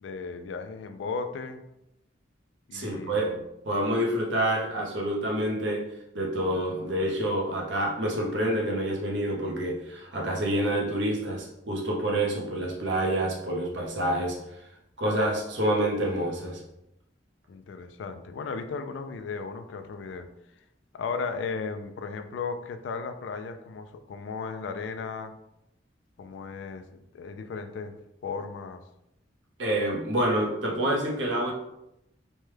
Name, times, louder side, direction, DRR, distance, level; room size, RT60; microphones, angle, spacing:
voice 1, 0.0-1.6 2.7-3.5 17.5-20.3 20.9-25.3 26.2-28.0 28.2-28.8, left 5 dB, 75° left, 8 dB, 0.3 m, -35 dB
voice 2, 2.7-3.3 3.6-5.8 6.1-14.6 15.0-16.6 29.6-31.5, right 1 dB, 75° right, -1 dB, 0.7 m, -27 dB
3.2 x 2.2 x 3.2 m, 0.84 s
head